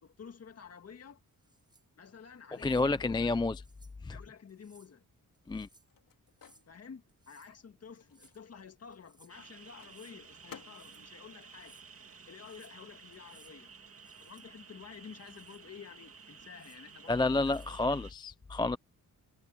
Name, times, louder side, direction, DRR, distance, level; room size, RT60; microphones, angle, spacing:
voice 1, 0.0-1.2 2.0-3.3 4.1-5.1 6.7-11.8 12.3-13.7 14.2-17.8, left 6 dB, 45° left, 1.9 m, -51 dB
sound 1, 1.3-1.9 2.5-2.9 3.6-3.9 4.5-4.9 5.3-5.9 6.3-6.7 7.1-7.6 7.9-8.4 8.9-9.3 9.8-10.2 10.6-11.1 11.4-11.9 12.3-12.8 13.1-13.6 14.0-14.5 14.9-15.6 16.4-16.8 17.3-17.8, right 2 dB, 10° right, 6.4 m, -64 dB
voice 2, 2.6-3.6 4.0-4.2 5.5-5.7 17.1-18.8, left 2 dB, 15° left, 0.4 m, -30 dB
Microwave oven, 5.1-12.7 12.9-14.8, left 8 dB, 70° left, 3.1 m, -59 dB
sound 2, 9.3-18.1, right 5 dB, 40° right, 2.2 m, -54 dB
wide cardioid pair, 160°, 35 cm